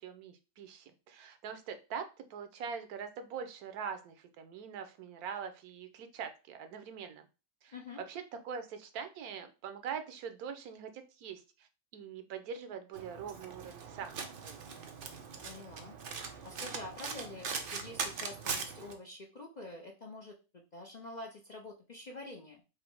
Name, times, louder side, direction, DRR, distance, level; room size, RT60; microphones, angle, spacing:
voice 1, 0.0-7.3 7.6-7.7 8.1-14.6, right 7 dB, 90° right, 8 dB, 1.2 m, -43 dB
Domestic sounds home sounds, 12.9-18.9, right 5 dB, 55° right, 0.6 m, -41 dB
voice 2, 15.4-15.9 16.2-22.6, left 2 dB, 50° left, 0 dB, 0.5 m, -47 dB
4.9 x 2.1 x 4.5 m, 0.31 s
omnidirectional pair, 1.5 m